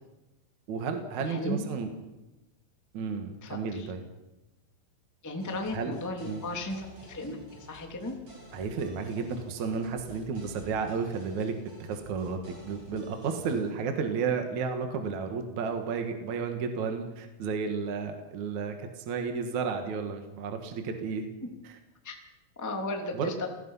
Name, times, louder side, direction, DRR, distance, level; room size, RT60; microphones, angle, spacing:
voice 1, 0.7-1.9 2.9-4.0 5.7-5.9 6.2-6.4 8.5-11.5 11.8-21.3 21.6-21.7 23.1-23.3, right 5 dB, 55° right, 5 dB, 2.1 m, -32 dB
voice 2, 1.2-1.6 3.4-3.9 5.2-8.2 22.0-22.2 22.6-23.5, left 2 dB, 10° left, 2 dB, 1.1 m, -35 dB
sound 1, 5.4-13.7, right 1 dB, 35° right, 7.8 m, -50 dB
29.5 x 18.5 x 5.7 m, 1.0 s
omnidirectional pair, 5.9 m